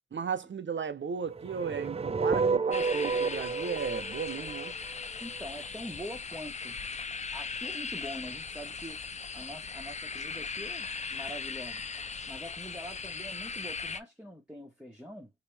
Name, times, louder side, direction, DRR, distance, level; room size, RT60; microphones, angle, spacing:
voice 1, 0.1-4.7, right 6 dB, 65° right, 0.7 m, -35 dB
sound 1, 1.3-5.4, right 5 dB, 30° right, 0.4 m, -30 dB
sound 2, 2.7-14.0, left 5 dB, 35° left, 0.4 m, -39 dB
voice 2, 5.2-6.8 7.3-9.0 9.3-11.9 12.3-15.3, equal, 5° right, 1.3 m, -44 dB
3.0 x 2.6 x 3.3 m
wide cardioid pair, 60°, 20 cm